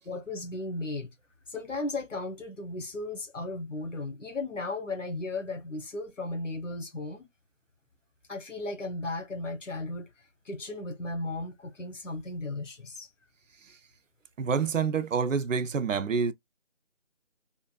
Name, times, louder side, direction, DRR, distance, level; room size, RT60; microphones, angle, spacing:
voice 1, 0.0-1.1 1.5-7.3 8.3-10.1 10.4-13.1, left 2 dB, 80° left, 1.1 m, -35 dB
voice 2, 14.4-16.3, right 6 dB, 85° right, 0.6 m, -27 dB
3.9 x 2.5 x 2.3 m
figure-of-eight pair, 170°, 37 cm